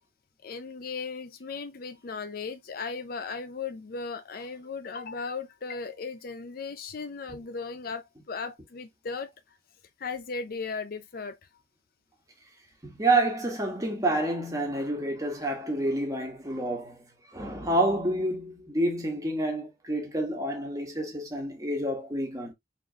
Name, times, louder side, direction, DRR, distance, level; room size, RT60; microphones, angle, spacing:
voice 1, 0.4-9.3 10.0-11.4, left 4 dB, 50° left, 0.5 m, -36 dB
voice 2, 12.8-17.0 17.3-22.5, right 1 dB, 20° right, 1.4 m, -28 dB
4.6 x 3.9 x 2.3 m
head